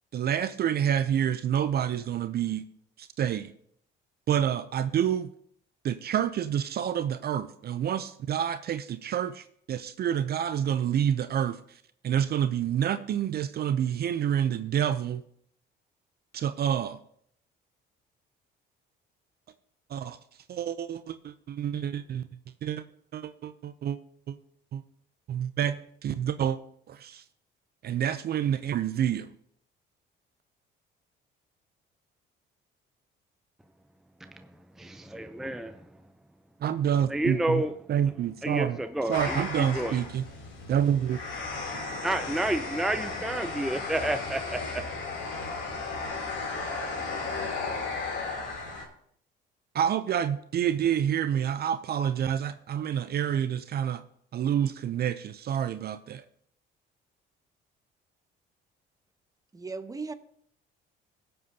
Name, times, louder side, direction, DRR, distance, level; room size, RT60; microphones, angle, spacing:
voice 1, 0.1-2.6 3.0-3.5 4.3-5.3 5.8-15.2 16.3-17.0 19.9-20.2 20.5-22.3 22.6-22.8 23.1-24.0 24.3-24.4 24.7-24.8 25.3-26.6 26.9-27.2 27.8-29.3 36.6-37.6 37.9-38.8 39.1-40.2 40.7-41.2 49.7-54.0 54.3-56.2, right 9 dB, 50° right, 0.5 m, -28 dB
voice 2, 34.8-35.9 37.1-37.7 38.4-40.0 42.0-45.0, right 1 dB, ahead, 0.5 m, -30 dB
sound 1, 39.1-48.8, left 3 dB, 65° left, 3.1 m, -35 dB
voice 3, 59.5-60.1, right 4 dB, 15° right, 1.0 m, -36 dB
19.5 x 8.0 x 2.8 m
cardioid pair, 90°, 21 cm